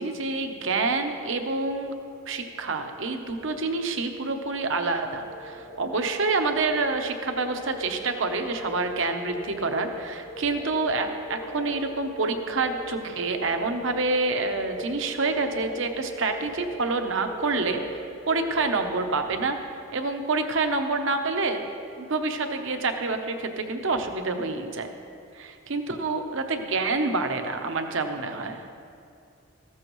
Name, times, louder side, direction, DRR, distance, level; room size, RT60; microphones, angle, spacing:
voice 1, 0.0-1.9 2.3-19.6 19.9-21.6 22.0-24.9 25.3-28.6, right 3 dB, 65° right, 6 dB, 0.9 m, -27 dB
sound 1, 1.8-2.0 2.3-3.0 3.3-19.1, left 1 dB, 85° left, 1.9 m, -41 dB
14.5 x 13.5 x 3.1 m, 2.5 s
head